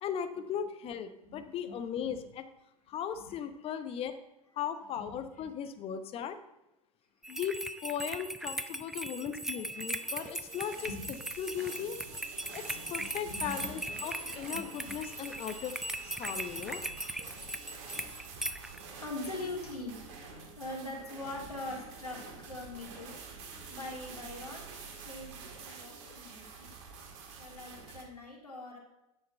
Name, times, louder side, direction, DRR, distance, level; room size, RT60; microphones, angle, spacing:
voice 1, 0.0-2.4 2.9-4.1 4.6-6.4 7.3-10.9 11.4-12.0 12.5-15.7 16.0-16.8, left 8 dB, 30° left, 9 dB, 0.9 m, -37 dB
voice 2, 1.2-2.1 3.3-3.4 5.0-5.2 9.1-9.2 10.9-11.1 12.9-13.7 14.9-15.0 16.5-16.7 19.0-23.2 23.7-24.6 25.0-26.7 27.4-28.8, left 2 dB, 90° left, -1 dB, 2.4 m, -43 dB
sound 1, 7.2-18.8, right 1 dB, ahead, 0.4 m, -39 dB
sound 2, 9.3-28.0, right 5 dB, 50° right, 1.8 m, -48 dB
9.7 x 6.4 x 4.4 m, 0.91 s
figure-of-eight pair, 95°, 19 cm